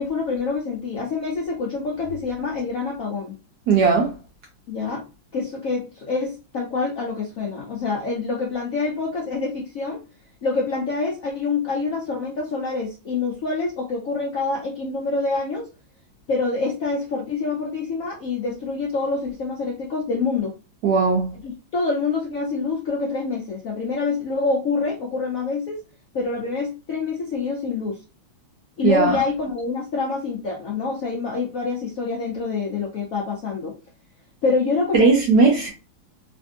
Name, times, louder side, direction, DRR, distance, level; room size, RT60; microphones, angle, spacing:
voice 1, 0.0-3.3 4.7-5.0 5.3-10.0 10.4-15.7 16.3-20.5 21.4-25.8 26.1-28.0 28.8-33.8 34.4-35.1, left 4 dB, 75° left, 0.7 m, -26 dB
voice 2, 3.7-4.1 20.8-21.3 28.8-29.2 34.9-35.7, right 4 dB, 75° right, 0.9 m, -17 dB
3.3 x 2.6 x 2.4 m
omnidirectional pair, 2.3 m